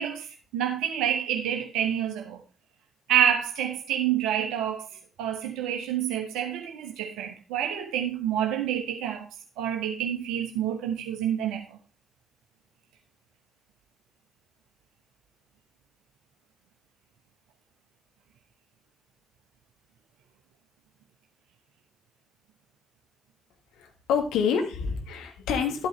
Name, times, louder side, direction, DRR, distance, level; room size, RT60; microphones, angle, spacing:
voice 1, 0.0-2.4 3.1-9.3 9.6-11.8, right 9 dB, 70° right, 1.0 m, -28 dB
voice 2, 23.8-25.9, left 6 dB, 70° left, 1.6 m, -27 dB
12.0 x 9.0 x 3.2 m
figure-of-eight pair, 40°, 0 cm